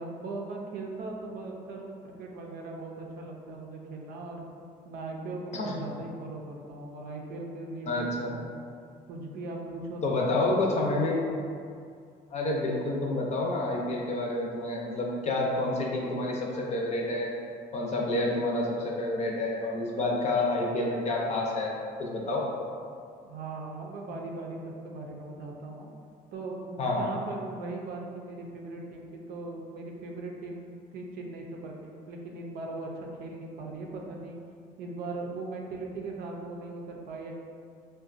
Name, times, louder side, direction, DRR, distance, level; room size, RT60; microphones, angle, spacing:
voice 1, 0.0-4.5 4.8-8.5 9.1-11.6 23.2-25.9 26.3-32.9 33.2-34.4 34.8-37.4, right 2 dB, 75° right, 0 dB, 0.5 m, -39 dB
voice 2, 7.9-8.4 10.0-11.2 12.3-17.3 17.7-21.7 22.0-22.4 26.8-27.1, left 2 dB, 45° left, -2 dB, 0.6 m, -29 dB
3.7 x 2.2 x 2.5 m, 2.3 s
cardioid pair, 90°, 16 cm